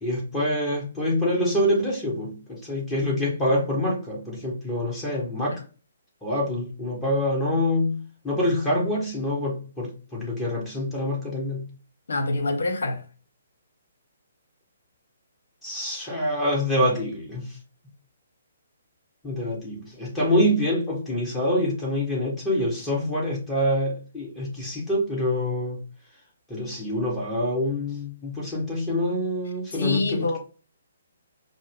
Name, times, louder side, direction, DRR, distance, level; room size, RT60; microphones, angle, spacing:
voice 1, 0.0-5.6 6.2-11.6 15.6-17.6 19.2-25.8 26.5-30.4, left 1 dB, 10° left, 1.4 m, -26 dB
voice 2, 12.1-13.0 29.8-30.4, left 2 dB, 70° left, 0.8 m, -25 dB
5.2 x 2.0 x 3.6 m
figure-of-eight pair, 135°, 0 cm